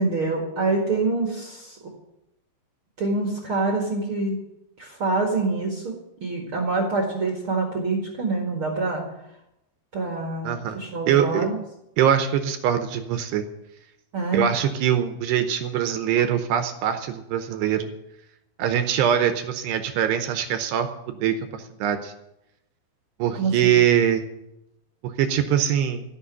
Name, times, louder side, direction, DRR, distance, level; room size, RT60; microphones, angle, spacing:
voice 1, 0.0-1.8 3.0-4.3 4.8-9.0 9.9-11.6 14.1-14.5 23.3-23.8, right 3 dB, 50° right, 0 dB, 1.6 m, -26 dB
voice 2, 10.4-10.8 11.1-11.5 12.0-13.5 14.3-17.9 18.6-22.1 23.2-24.2 25.2-26.0, right 9 dB, 75° right, 8 dB, 2.7 m, -23 dB
15.0 x 6.2 x 9.7 m, 0.86 s
omnidirectional pair, 5.3 m